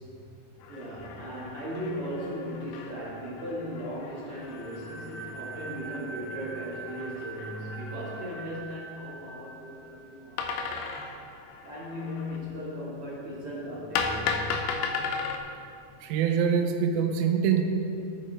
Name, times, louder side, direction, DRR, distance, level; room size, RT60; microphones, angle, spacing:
sound 1, 0.6-8.7 10.4-12.5 14.0-15.4, left 5 dB, 80° left, 2.5 m, -36 dB
voice 1, 0.7-10.9 11.6-14.5, equal, 50° right, -6 dB, 1.8 m, -37 dB
sound 2, 4.4-10.8, right 4 dB, 55° left, 4.0 m, -44 dB
voice 2, 16.0-17.6, right 7 dB, 80° right, 4 dB, 2.3 m, -24 dB
12.0 x 8.9 x 3.4 m, 2.5 s
omnidirectional pair, 4.8 m